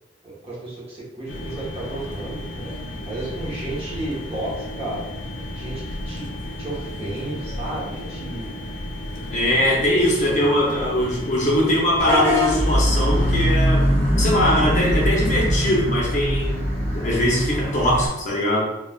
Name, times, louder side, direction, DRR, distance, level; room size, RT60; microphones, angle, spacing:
voice 1, 0.2-2.4 3.1-5.1 5.5-6.3 6.6-8.6 10.0-10.5, right 1 dB, 30° right, -6 dB, 0.8 m, -32 dB
sound 1, 1.3-13.5, left 1 dB, 85° left, 0.6 m, -33 dB
voice 2, 9.3-18.7, left 1 dB, 40° left, -4 dB, 0.6 m, -21 dB
Vehicle horn car horn honking / Bus, 12.0-18.1, equal, 10° left, 1.2 m, -21 dB
3.2 x 2.2 x 2.3 m, 0.92 s
head